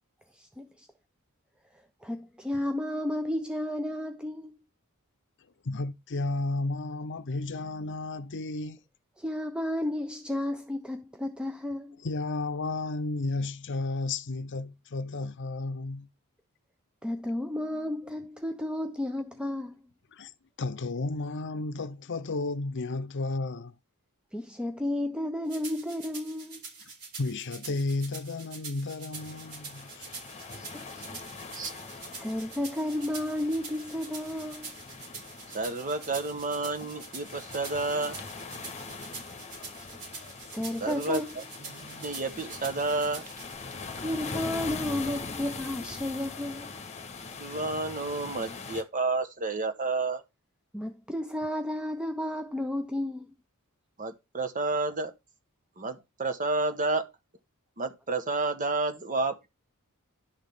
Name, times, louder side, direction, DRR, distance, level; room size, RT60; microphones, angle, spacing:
voice 1, 0.3-0.9 2.0-4.6 9.2-12.0 17.0-19.7 24.3-26.6 30.5-31.1 32.1-34.7 39.7-39.9 40.4-41.3 44.0-46.7 50.7-53.3, left 1 dB, 5° right, 0.7 m, -32 dB
voice 2, 5.6-8.8 12.0-16.1 20.1-20.3 20.6-23.7 27.2-30.1, left 3 dB, 55° left, 0.7 m, -33 dB
sound 1, 25.5-43.5, right 4 dB, 70° right, 5.8 m, -45 dB
sound 2, 29.1-48.8, left 4 dB, 30° left, 1.4 m, -42 dB
voice 3, 35.5-38.3 40.8-43.2 47.3-50.2 54.0-55.1 55.8-57.0 57.8-59.5, right 3 dB, 35° right, 1.3 m, -30 dB
11.5 x 6.6 x 3.6 m
head